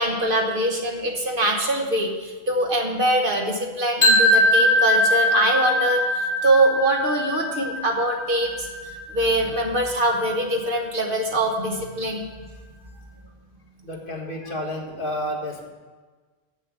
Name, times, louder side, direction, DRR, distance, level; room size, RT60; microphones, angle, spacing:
voice 1, 0.0-8.7 9.1-12.2, right 1 dB, 50° right, 2 dB, 1.3 m, -23 dB
sound 1, 4.0-9.9, left 1 dB, 70° left, 1.9 m, -21 dB
voice 2, 13.8-15.7, equal, 50° left, -2 dB, 1.8 m, -30 dB
7.6 x 7.1 x 8.1 m, 1.4 s
omnidirectional pair, 1.1 m